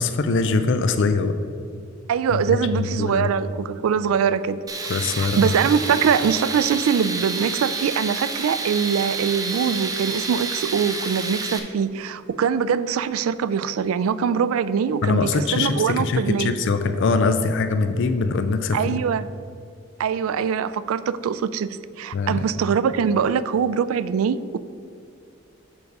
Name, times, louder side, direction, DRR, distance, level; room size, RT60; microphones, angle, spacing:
voice 1, 0.0-1.3 2.3-3.3 4.9-5.5 15.0-19.0 22.1-22.4, left 4 dB, 60° left, 9 dB, 0.4 m, -22 dB
voice 2, 2.1-4.6 5.2-16.5 18.7-19.3 20.0-21.7 22.0-24.6, right 7 dB, 85° right, 15 dB, 0.3 m, -23 dB
Tools, 4.7-11.6, right 4 dB, 20° right, 0.6 m, -29 dB
7.0 x 4.7 x 5.3 m, 2.4 s
head